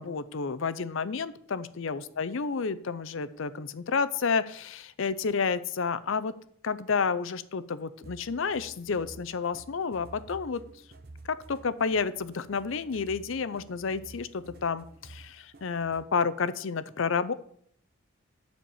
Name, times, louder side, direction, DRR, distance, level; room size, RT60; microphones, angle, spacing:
voice 1, 0.0-6.3 6.6-10.6 11.5-17.3, left 5 dB, 70° left, 14 dB, 0.5 m, -30 dB
sound 1, 8.0-16.2, right 2 dB, 45° right, 0.8 m, -51 dB
9.9 x 4.4 x 7.0 m, 0.64 s
head